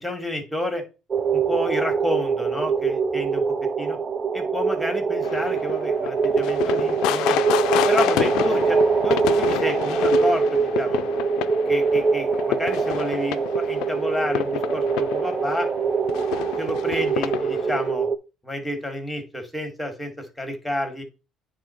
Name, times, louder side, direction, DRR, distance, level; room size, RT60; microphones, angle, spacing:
voice 1, 0.0-0.8 1.3-3.4 3.8-4.0 4.3-7.4 7.9-11.0 11.7-15.7 16.6-18.1 18.4-21.0, left 1 dB, 5° left, 5 dB, 1.7 m, -30 dB
sound 1, 1.1-18.2, right 5 dB, 35° right, 0.4 m, -23 dB
sound 2, 5.2-17.9, left 13 dB, 85° left, 0.4 m, -29 dB
9.1 x 3.1 x 4.3 m, 0.30 s
cardioid pair, 110°, 0 cm